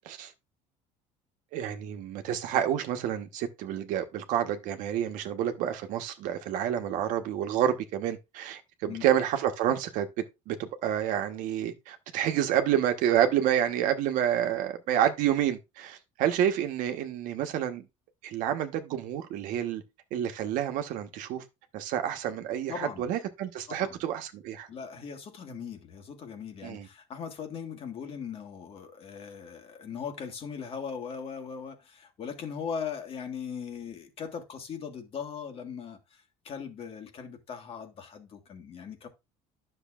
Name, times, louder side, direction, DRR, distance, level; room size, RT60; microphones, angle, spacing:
voice 1, 1.5-10.1 10.5-17.8 18.2-19.8 20.1-21.4 21.7-24.7 26.6-26.9, right 10 dB, 70° right, 1.2 m, -29 dB
voice 2, 22.7-23.1 23.7-24.0 24.7-39.1, left 6 dB, 40° left, 1.6 m, -39 dB
10.5 x 6.6 x 2.5 m
cardioid pair, 130°, 14 cm